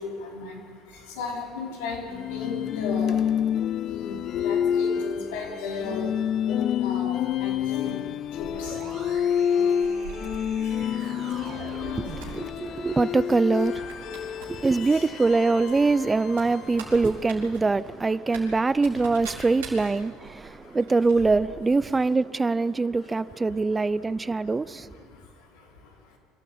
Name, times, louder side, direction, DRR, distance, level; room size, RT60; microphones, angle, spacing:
voice 1, 0.0-12.9 14.0-15.3 16.4-16.9 18.0-18.7 18.9-19.1 19.8-20.8 22.7-26.2, left 4 dB, 80° left, 4.9 m, -39 dB
sound 1, 2.1-17.2, left 9 dB, 50° left, 0.6 m, -28 dB
sound 2, 8.4-12.5, right 5 dB, 45° right, 4.3 m, -42 dB
sound 3, 9.1-10.7 11.2-11.5 11.8-12.6 13.2-13.4 13.6-14.5 14.8-14.9 15.6-21.8 22.0-22.1, right 5 dB, 85° right, 4.7 m, -44 dB
voice 2, 11.0-25.0, right 3 dB, 20° right, 0.6 m, -24 dB
25.0 x 13.5 x 8.7 m
hypercardioid pair, 80°, 0 cm